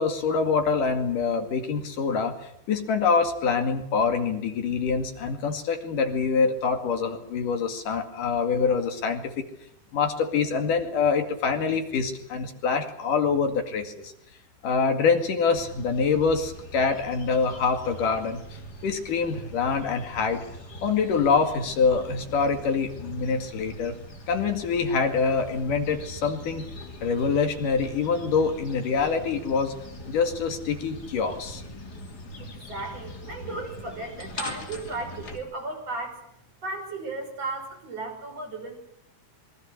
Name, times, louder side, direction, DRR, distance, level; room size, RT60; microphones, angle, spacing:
voice 1, 0.0-2.4 2.7-9.3 9.9-14.1 14.6-18.4 18.8-20.5 20.8-24.0 24.3-26.7 27.0-29.7 30.1-31.6, left 5 dB, 70° left, 5 dB, 3.7 m, -25 dB
sound 1, 15.5-35.4, left 1 dB, 30° left, 3.1 m, -42 dB
voice 2, 32.4-36.2 36.6-38.8, right 3 dB, 45° right, 3 dB, 6.9 m, -35 dB
26.5 x 23.0 x 6.7 m, 0.73 s
omnidirectional pair, 4.0 m